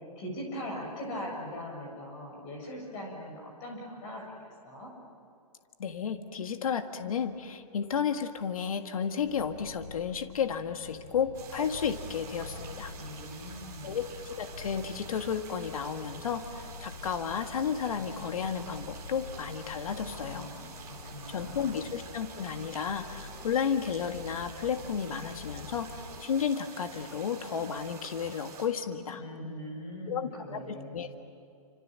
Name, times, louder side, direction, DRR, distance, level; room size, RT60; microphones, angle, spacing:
voice 1, 0.2-4.4 4.6-4.9 13.0-14.0 20.1-21.8 29.2-31.1, equal, 20° left, 0 dB, 7.2 m, -41 dB
voice 2, 5.8-12.9 13.8-20.5 21.3-25.9 26.2-29.2 30.1-31.2, left 7 dB, 60° left, 7 dB, 1.8 m, -32 dB
sound 1, 9.2-26.2, left 4 dB, 75° left, 3.3 m, -47 dB
sound 2, 11.3-28.7, right 5 dB, 15° right, 4.0 m, -48 dB
29.5 x 26.5 x 7.6 m, 2.5 s
hypercardioid pair, 170°, 20 cm